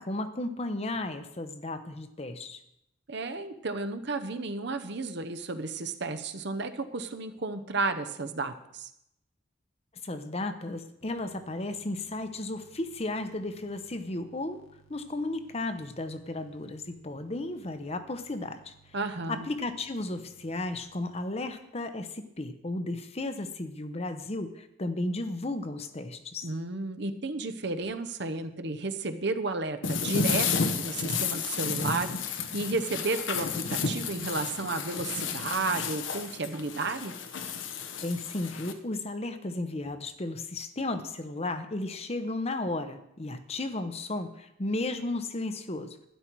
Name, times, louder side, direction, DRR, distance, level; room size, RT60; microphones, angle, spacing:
voice 1, 0.0-2.6 10.0-14.6 14.9-18.7 19.3-26.5 38.0-46.0, left 2 dB, 30° left, 9 dB, 0.8 m, -34 dB
voice 2, 3.1-8.9 18.9-19.5 26.4-37.1, right 3 dB, 60° right, 8 dB, 0.9 m, -33 dB
sound 1, 11.0-21.1, right 5 dB, 85° left, 1.6 m, -61 dB
sound 2, 29.8-38.7, left 5 dB, 70° left, 1.0 m, -32 dB
12.5 x 10.5 x 4.6 m, 0.79 s
head